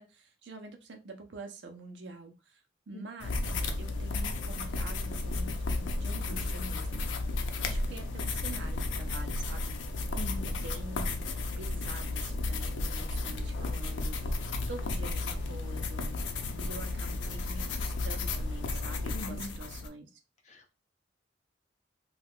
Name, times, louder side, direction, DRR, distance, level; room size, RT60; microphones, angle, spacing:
voice 1, 0.0-7.1 7.6-9.8 10.1-10.2 10.4-11.2 11.6-16.2 16.6-20.2, right 3 dB, 75° right, 0.6 m, -46 dB
sound 1, 3.2-19.9, left 2 dB, 85° left, 0.5 m, -33 dB
voice 2, 10.2-10.6 19.1-19.5 20.5-20.7, equal, 40° left, 0.5 m, -41 dB
2.3 x 2.3 x 3.5 m
head